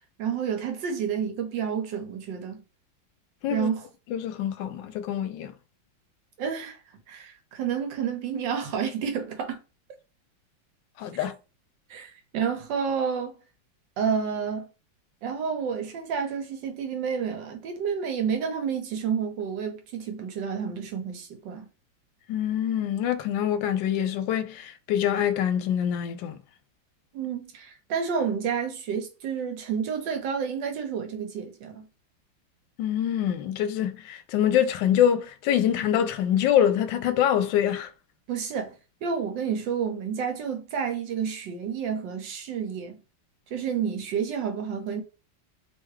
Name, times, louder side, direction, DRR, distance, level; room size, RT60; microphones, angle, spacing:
voice 1, 0.2-2.6 3.5-3.9 6.4-6.8 7.1-9.6 11.9-13.3 14.0-14.7 15.2-21.7 27.1-31.9 38.3-38.7 39.0-43.0 43.5-45.0, right 7 dB, 75° right, 1.5 m, -30 dB
voice 2, 4.1-5.5 11.0-11.3 22.3-26.4 32.8-37.9, left 10 dB, 80° left, 1.2 m, -25 dB
3.4 x 3.3 x 3.2 m
omnidirectional pair, 2.1 m